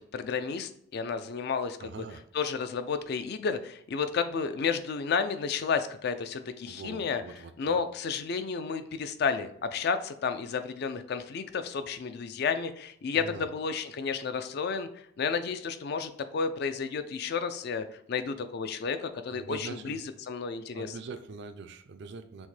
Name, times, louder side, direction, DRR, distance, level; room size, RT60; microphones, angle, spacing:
voice 1, 0.0-2.0 2.3-7.2 7.6-14.9 15.2-20.9, left 5 dB, 55° left, 10 dB, 0.4 m, -32 dB
voice 2, 1.8-2.2 6.7-7.8 13.1-13.5 19.3-20.0 20.7-22.5, right 4 dB, 60° right, 9 dB, 0.4 m, -43 dB
6.1 x 2.1 x 3.2 m, 0.69 s
head